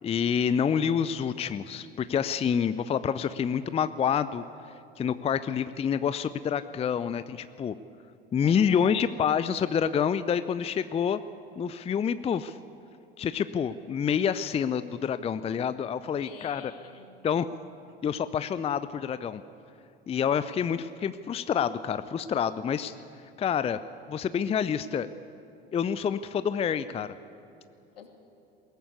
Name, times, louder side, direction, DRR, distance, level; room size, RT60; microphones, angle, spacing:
voice 1, 0.0-4.4 5.0-7.7 8.3-11.2 11.6-12.6 13.2-16.7 17.2-17.5 18.0-19.4 20.1-23.0 23.4-23.8 24.1-25.1 25.7-27.2, left 7 dB, 20° left, 14 dB, 0.6 m, -27 dB
voice 2, 8.4-9.1 16.2-17.2 28.0-28.1, left 6 dB, 75° left, 4 dB, 2.7 m, -47 dB
21.0 x 18.5 x 8.4 m, 2.6 s
figure-of-eight pair, 70°, 30 cm